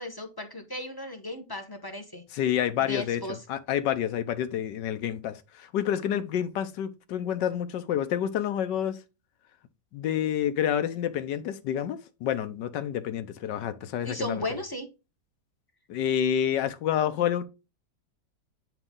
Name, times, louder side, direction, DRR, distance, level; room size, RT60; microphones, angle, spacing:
voice 1, 0.0-2.2 2.8-3.4 14.0-14.9, left 1 dB, 20° left, 0.6 m, -35 dB
voice 2, 2.3-9.0 9.9-14.4 15.9-17.4, left 10 dB, 75° left, 1.4 m, -28 dB
9.0 x 3.6 x 3.7 m
omnidirectional pair, 2.0 m